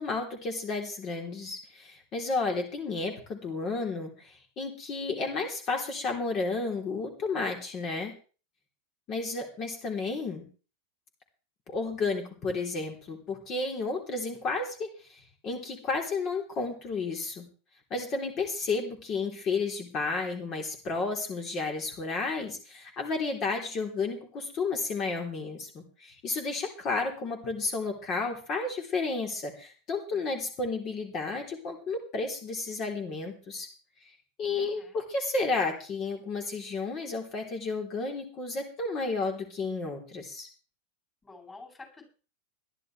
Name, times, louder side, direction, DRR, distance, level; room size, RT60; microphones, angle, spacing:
voice 1, 0.0-8.1 9.1-10.4 11.7-17.4 17.9-33.7 34.4-40.5, left 3 dB, 40° left, 3 dB, 3.4 m, -32 dB
voice 2, 34.5-35.0 41.2-42.0, left 3 dB, 20° left, 1 dB, 7.6 m, -49 dB
21.0 x 12.5 x 3.3 m, 0.37 s
figure-of-eight pair, 90°, 0 cm